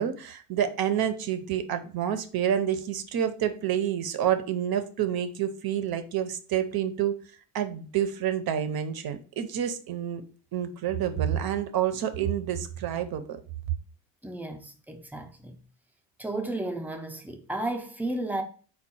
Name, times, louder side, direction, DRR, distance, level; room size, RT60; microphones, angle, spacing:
voice 1, 0.0-7.2 7.5-10.2 10.5-13.4, right 9 dB, 55° right, 0.6 m, -28 dB
voice 2, 14.2-15.6 16.2-18.4, right 2 dB, 5° right, 0.4 m, -33 dB
4.6 x 2.3 x 4.2 m
cardioid pair, 140°, 45 cm